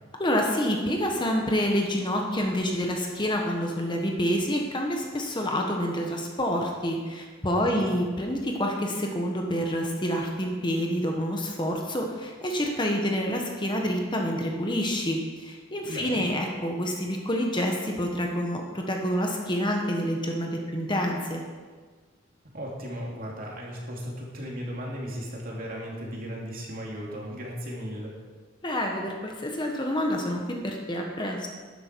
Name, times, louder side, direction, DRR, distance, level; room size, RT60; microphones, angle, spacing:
voice 1, 0.2-21.4 28.6-31.5, equal, 20° left, 1 dB, 1.3 m, -28 dB
voice 2, 7.6-7.9 15.9-16.3 22.5-28.1, equal, 45° right, -2 dB, 2.8 m, -36 dB
12.5 x 11.0 x 4.7 m, 1.5 s
head